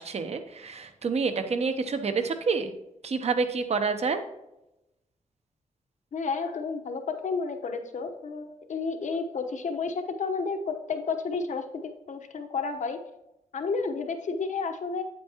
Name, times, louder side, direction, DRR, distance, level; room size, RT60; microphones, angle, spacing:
voice 1, 0.0-2.7 3.0-4.2, right 4 dB, 50° right, 8 dB, 0.8 m, -28 dB
voice 2, 6.1-13.0 13.5-15.0, left 4 dB, 65° left, 6 dB, 1.0 m, -31 dB
8.7 x 8.3 x 2.9 m, 0.91 s
wide cardioid pair, 120°, 13 cm